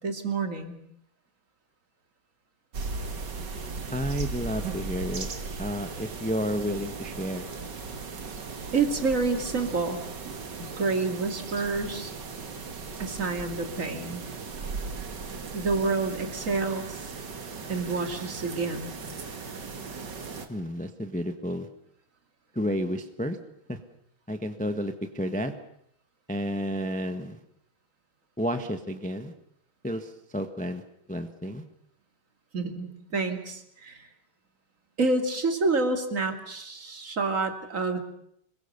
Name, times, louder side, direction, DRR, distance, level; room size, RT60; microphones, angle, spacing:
voice 1, 0.0-0.8 8.7-10.0 10.3-10.4 10.8-12.1 13.0-14.3 15.5-17.1 17.7-18.9 32.5-34.1 35.0-38.0, right 3 dB, 40° right, 6 dB, 3.0 m, -28 dB
sound 1, 2.7-20.5, right 4 dB, 55° right, 2.5 m, -37 dB
voice 2, 3.9-5.3 5.6-7.5 20.5-21.7 22.5-23.4 23.7-23.8 24.3-25.5 26.3-27.4 28.4-29.3 29.8-30.8 31.1-31.6, equal, 5° left, 8 dB, 1.2 m, -31 dB
27.0 x 22.0 x 6.9 m, 0.71 s
omnidirectional pair, 2.2 m